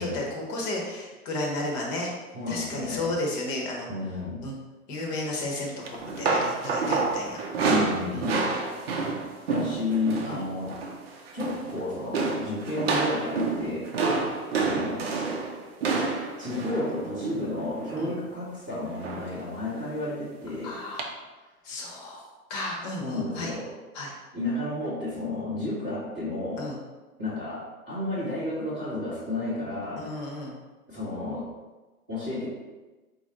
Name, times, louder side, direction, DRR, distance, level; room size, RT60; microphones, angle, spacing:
voice 1, 0.0-2.1 2.5-3.9 4.4-4.5 4.9-7.4 8.1-8.2 10.2-10.4 14.1-14.2 18.0-18.1 20.6-21.1 21.6-23.5 23.9-24.1 26.6-26.8 30.0-30.5, left 2 dB, 30° left, -1 dB, 1.0 m, -33 dB
voice 2, 2.3-3.1 3.9-4.4 7.7-8.4 9.5-10.7 11.3-13.9 14.6-15.1 16.4-20.7 23.0-23.7 24.3-26.7 27.2-30.1 30.9-31.5 32.1-32.5, left 2 dB, 5° right, -20 dB, 0.3 m, -32 dB
sound 1, 5.8-10.4 10.6-11.0 11.3-11.8 12.1-18.2 19.0-19.4 19.7-19.9 21.0-21.1, right 4 dB, 40° right, 0.7 m, -28 dB
4.8 x 2.7 x 4.0 m, 1.2 s
figure-of-eight pair, 115°, 46 cm